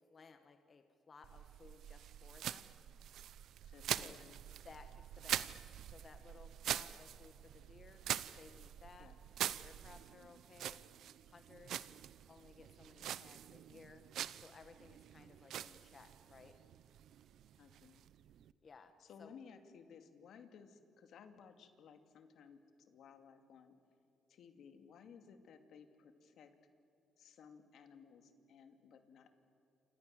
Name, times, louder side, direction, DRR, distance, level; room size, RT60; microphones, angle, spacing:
voice 1, 0.1-2.7 3.9-4.2 4.6-8.0 8.3-9.1 9.6-10.8 11.3-11.8 12.3-14.0 14.3-16.6 18.6-18.9 19.2-19.4, left 4 dB, 40° left, 7 dB, 1.5 m, -59 dB
sound 1, 1.2-18.5, right 11 dB, 75° right, 0.7 m, -45 dB
voice 2, 3.7-4.4 9.0-9.2 17.6-18.0 19.0-23.8 24.3-26.5 27.2-29.3, left 6 dB, 70° left, 7 dB, 2.5 m, -58 dB
28.5 x 26.0 x 7.8 m, 2.6 s
cardioid pair, 90°, 0 cm